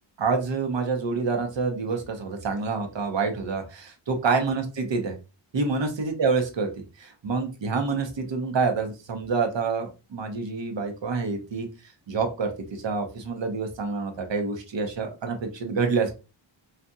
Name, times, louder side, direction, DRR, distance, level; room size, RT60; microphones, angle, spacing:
voice 1, 0.2-5.2 5.5-6.7 7.0-11.7 12.1-16.1, right 4 dB, 60° right, 5 dB, 0.9 m, -27 dB
2.7 x 2.4 x 2.2 m, 0.30 s
cardioid pair, 40°, 49 cm